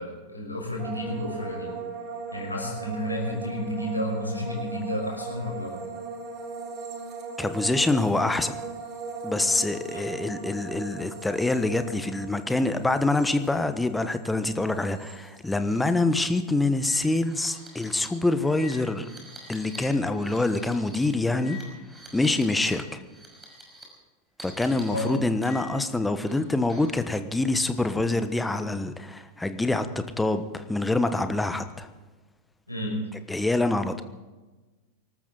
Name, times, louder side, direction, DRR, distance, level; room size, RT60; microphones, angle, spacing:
voice 1, 0.0-1.8 2.3-5.8 9.9-10.0 24.9-25.1 32.7-33.1, left 1 dB, 85° left, -1 dB, 5.8 m, -31 dB
sound 1, 0.8-16.0 16.3-16.9, right 4 dB, 35° right, 3.6 m, -39 dB
voice 2, 7.4-8.6 9.2-19.1 19.5-21.6 22.1-23.0 24.4-31.9 33.3-34.0, left 2 dB, 5° left, 10 dB, 1.2 m, -25 dB
sound 2, 15.5-15.8 16.1-16.2 16.7-22.8 23.1-23.8 24.4-25.9 26.3-27.0, left 1 dB, 10° right, 5.6 m, -46 dB
24.5 x 13.5 x 4.1 m, 1.2 s
figure-of-eight pair, 90°, 0 cm